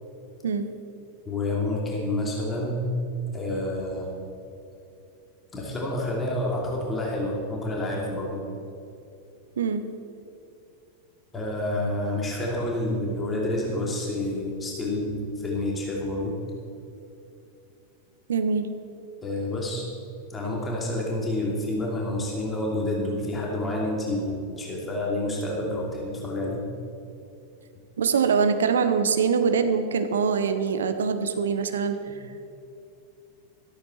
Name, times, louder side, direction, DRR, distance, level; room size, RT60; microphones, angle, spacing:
voice 1, 1.2-2.8 3.3-4.1 5.5-8.4 11.3-16.4 19.2-19.9 20.3-26.6, left 1 dB, 15° left, -3 dB, 2.7 m, -28 dB
voice 2, 18.3-18.7 28.0-32.0, right 6 dB, 65° right, 8 dB, 0.9 m, -23 dB
13.5 x 13.5 x 4.3 m, 2.7 s
figure-of-eight pair, 90°, 0 cm